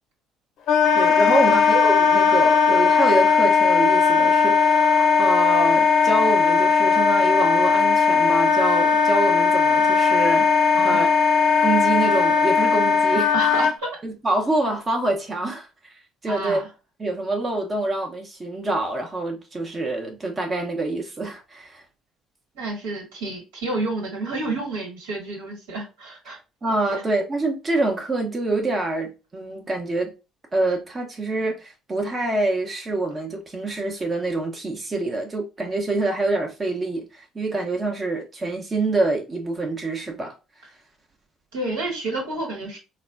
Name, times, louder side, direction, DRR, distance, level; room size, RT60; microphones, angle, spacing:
Wind instrument woodwind instrument, 0.7-13.7, left 5 dB, 60° left, 0.6 m, -18 dB
voice 1, 0.9-11.1 11.6-13.6 14.0-16.6 17.0-21.8 26.6-30.1 30.5-40.4, right 2 dB, 30° right, 0.8 m, -26 dB
voice 2, 10.7-11.1 13.3-14.0 16.2-16.7 22.5-26.4 26.9-27.0 41.5-42.8, right 2 dB, 75° right, 1.5 m, -30 dB
4.1 x 2.2 x 2.4 m
hypercardioid pair, 55°, 0 cm